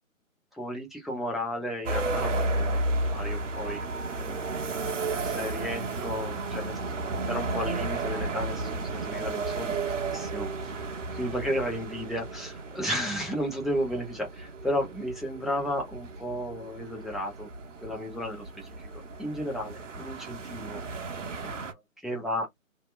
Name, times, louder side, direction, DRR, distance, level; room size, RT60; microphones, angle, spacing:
voice 1, 0.6-3.8 4.2-4.9 5.2-9.8 10.1-10.8 11.1-17.5 17.8-18.9 19.2-20.8 21.4-22.5, equal, ahead, 0.4 m, -34 dB
sound 1, 1.8-21.7, right 2 dB, 60° right, 0.9 m, -33 dB
2.7 x 2.1 x 2.9 m
figure-of-eight pair, 155°, 41 cm